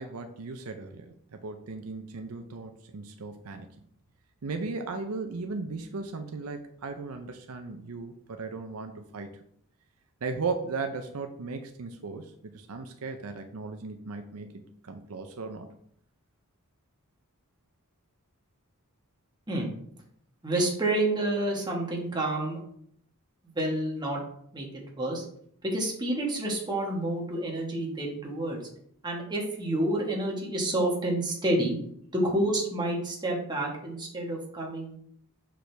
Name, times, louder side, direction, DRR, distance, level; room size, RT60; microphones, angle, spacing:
voice 1, 0.0-3.7 4.4-9.3 10.2-15.7, right 4 dB, 75° right, 6 dB, 0.6 m, -36 dB
voice 2, 20.4-22.6 23.5-24.2 24.5-25.2 25.6-28.6 29.0-31.8 32.1-35.0, right 1 dB, 20° right, -2 dB, 1.5 m, -29 dB
6.2 x 5.0 x 3.3 m, 0.67 s
head